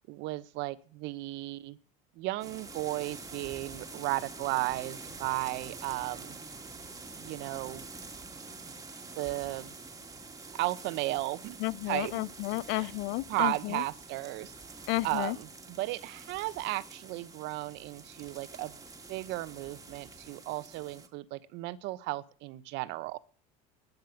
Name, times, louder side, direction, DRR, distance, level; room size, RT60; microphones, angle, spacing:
voice 1, 0.1-1.8 2.2-6.4 7.2-7.8 9.1-9.7 10.5-11.6 11.9-12.2 12.7-12.9 13.3-14.5 15.0-18.8 19.1-23.2, right 18 dB, 65° right, 1.0 m, -35 dB
sound 1, 2.4-21.1, right 3 dB, 15° right, 1.9 m, -47 dB
voice 2, 11.6-13.8 14.9-15.4, left 19 dB, 65° left, 0.7 m, -32 dB
12.0 x 10.5 x 7.1 m
supercardioid pair, 90°, 20 cm